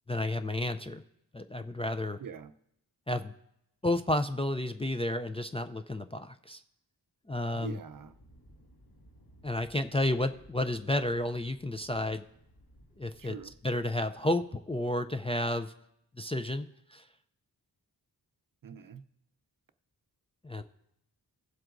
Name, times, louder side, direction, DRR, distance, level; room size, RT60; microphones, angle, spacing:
voice 1, 0.1-1.0 1.3-2.2 3.1-3.3 3.8-6.6 7.3-7.8 9.4-12.2 13.0-13.4 13.6-15.7 16.2-17.0 20.4-20.6, left 1 dB, 15° left, 7 dB, 0.4 m, -31 dB
voice 2, 2.2-2.5 7.5-8.2 13.2-13.5 18.6-19.0, right 6 dB, 55° right, 11 dB, 0.6 m, -44 dB
Thunder, 7.9-13.6, equal, 60° left, 2.1 m, -59 dB
17.0 x 7.6 x 2.5 m, 0.79 s
wide cardioid pair, 80°, 40 cm